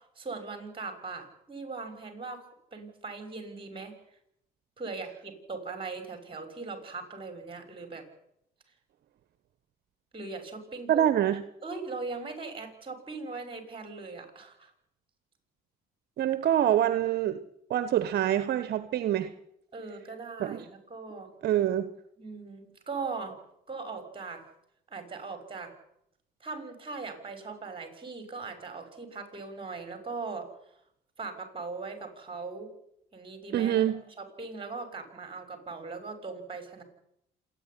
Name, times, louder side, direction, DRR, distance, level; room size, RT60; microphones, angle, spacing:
voice 1, 0.0-3.9 4.8-8.1 10.1-11.0 11.6-14.7 19.7-21.3 22.2-23.3 23.7-24.4 24.9-25.7 26.4-30.5 31.2-32.7 33.1-33.8 34.2-36.8, right 4 dB, 30° right, 7 dB, 6.2 m, -39 dB
voice 2, 10.9-11.4 16.2-17.4 17.7-19.3 20.4-20.7 21.4-21.9 33.5-34.0, right 11 dB, 60° right, 11 dB, 1.2 m, -25 dB
27.0 x 10.0 x 9.8 m, 0.76 s
supercardioid pair, 85°, 18 cm